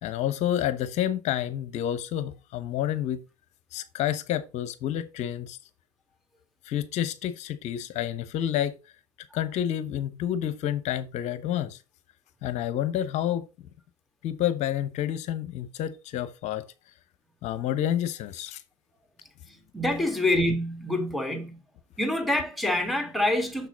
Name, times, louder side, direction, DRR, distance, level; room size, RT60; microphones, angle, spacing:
voice 1, 0.0-3.2 3.7-5.6 6.6-8.7 9.3-11.8 12.4-13.7 14.2-16.6 17.4-18.6, left 11 dB, 45° left, 0.9 m, -29 dB
voice 2, 19.7-21.6 22.0-23.7, left 1 dB, ahead, 1.8 m, -26 dB
6.8 x 6.1 x 4.0 m
figure-of-eight pair, 75°, 16 cm